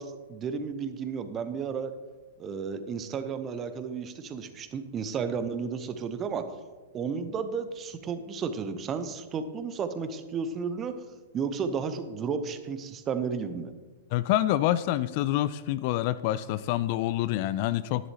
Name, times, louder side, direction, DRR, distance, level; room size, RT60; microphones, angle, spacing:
voice 1, 0.0-1.9 2.4-6.4 6.9-10.9 11.3-13.7, right 6 dB, 25° right, 10 dB, 0.8 m, -33 dB
voice 2, 14.1-18.1, left 14 dB, 45° left, 15 dB, 0.3 m, -27 dB
11.0 x 11.0 x 2.9 m, 1.3 s
figure-of-eight pair, 100°, 0 cm